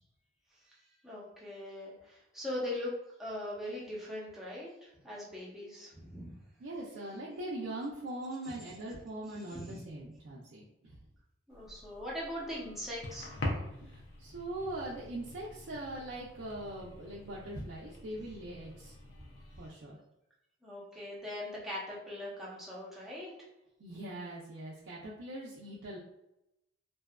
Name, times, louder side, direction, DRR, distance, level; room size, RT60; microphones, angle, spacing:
voice 1, 0.6-2.9 3.2-6.3 8.4-8.6 9.3-9.8 11.5-13.3 20.6-23.3, left 1 dB, ahead, -7 dB, 0.7 m, -41 dB
voice 2, 6.6-11.0 13.8-18.9 19.6-20.0 23.8-26.0, right 1 dB, 75° right, -5 dB, 0.4 m, -41 dB
sound 1, 11.5-19.7, left 1 dB, 70° left, 0.6 m, -44 dB
2.6 x 2.3 x 2.2 m, 0.87 s
head